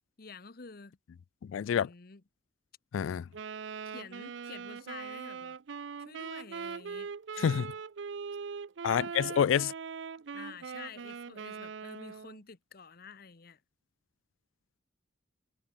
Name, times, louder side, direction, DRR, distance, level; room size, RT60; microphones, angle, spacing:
voice 1, 0.2-1.0 1.7-2.2 3.8-5.6 6.0-7.1 7.4-7.7 10.3-13.6, left 5 dB, 50° left, 1.0 m, -49 dB
voice 2, 1.5-1.9 2.9-3.3 7.4-7.7 8.8-9.7, left 8 dB, 80° left, 0.3 m, -27 dB
Wind instrument woodwind instrument, 3.3-12.4, right 6 dB, 65° right, 0.5 m, -41 dB
head